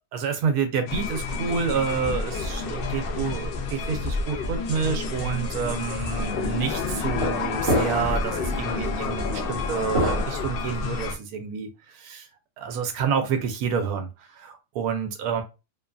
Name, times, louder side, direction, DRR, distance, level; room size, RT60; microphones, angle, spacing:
voice 1, 0.1-12.3 12.6-15.4, right 6 dB, 85° right, 6 dB, 1.0 m, -28 dB
sound 1, 0.9-11.2, left 4 dB, 75° left, 0.5 m, -29 dB
sound 2, 5.9-6.1 7.0-7.4 7.6-8.2 8.6-8.8 9.9-11.0, equal, 45° right, 1.2 m, -27 dB
2.7 x 2.2 x 2.3 m, 0.27 s
omnidirectional pair, 1.5 m